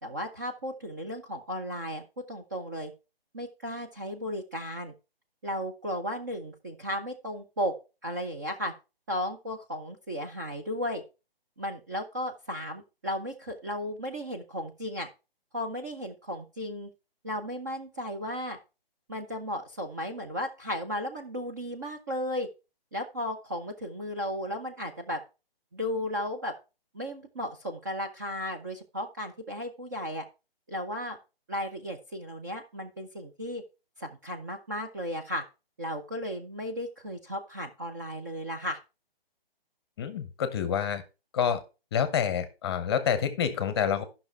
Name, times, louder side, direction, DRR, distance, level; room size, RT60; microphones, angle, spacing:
voice 1, 0.0-2.9 3.3-4.9 5.4-7.7 8.0-8.7 9.1-11.0 11.6-15.1 15.5-16.9 17.2-18.6 19.1-22.5 22.9-25.2 25.7-26.5 26.9-30.2 30.7-31.2 31.5-33.6 34.0-35.4 35.8-38.8, equal, 20° right, 3 dB, 0.5 m, -35 dB
voice 2, 40.0-41.0 41.3-41.6 41.9-44.0, left 8 dB, 25° left, 12 dB, 0.8 m, -27 dB
10.5 x 5.9 x 4.3 m, 0.30 s
hypercardioid pair, 155°, 30 cm